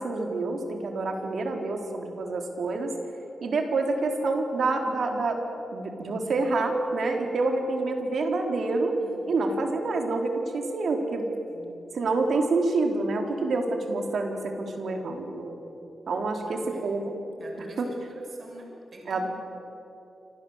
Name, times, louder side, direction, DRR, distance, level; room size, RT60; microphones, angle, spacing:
voice 1, 0.0-2.9 3.4-5.4 5.7-9.0 9.3-11.3 11.9-15.5 16.1-17.1 17.8-17.9 19.1-19.3, right 3 dB, 70° right, 3 dB, 4.1 m, -27 dB
voice 2, 1.1-1.7 9.0-9.6 11.5-11.8 16.4-17.0 17.3-19.3, right 1 dB, 50° right, 0 dB, 6.5 m, -46 dB
28.0 x 25.5 x 8.2 m, 2.9 s
cardioid pair, 80°, 0 cm